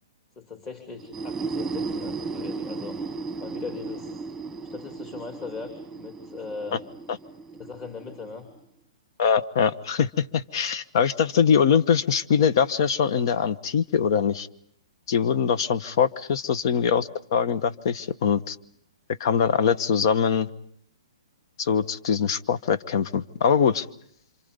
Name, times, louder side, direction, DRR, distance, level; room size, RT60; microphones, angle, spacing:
voice 1, 0.4-3.0 3.4-4.1 4.6-6.8 7.6-8.5, left 4 dB, 25° left, 4 dB, 2.9 m, -39 dB
sound 1, 1.0-8.6, right 4 dB, 5° right, 1.4 m, -35 dB
voice 2, 9.2-14.5 15.1-18.6 19.2-20.5 21.6-23.8, left 7 dB, 50° left, 15 dB, 1.2 m, -23 dB
28.5 x 26.5 x 5.3 m, 0.69 s
hypercardioid pair, 145°, 3 cm